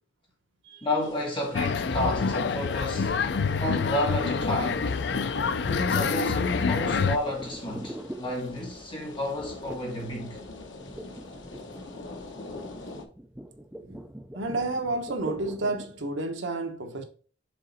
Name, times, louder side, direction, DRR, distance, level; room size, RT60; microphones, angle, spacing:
voice 1, 0.8-3.1 3.6-4.9 5.6-10.4, left 1 dB, 25° left, 1.8 m, -31 dB
sound 1, 1.0-13.1, left 2 dB, 75° left, 1.0 m, -44 dB
sound 2, 1.5-7.2, left 5 dB, 60° left, 0.4 m, -27 dB
sound 3, 2.6-8.9 9.7-10.1 10.3-16.0, right 1 dB, 5° right, 0.5 m, -44 dB
voice 2, 14.3-17.0, right 2 dB, 80° right, 1.0 m, -31 dB
6.4 x 4.0 x 4.0 m
head